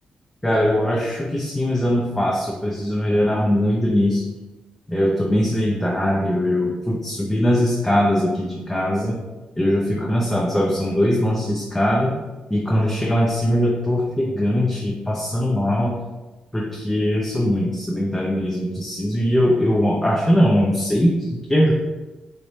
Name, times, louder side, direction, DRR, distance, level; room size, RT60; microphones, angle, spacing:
voice 1, 0.4-4.3 4.9-9.2 9.6-12.1 12.5-15.9 16.5-21.7, equal, 15° left, -2 dB, 0.6 m, -21 dB
3.2 x 2.8 x 2.7 m, 1.1 s
supercardioid pair, 55°, 3 cm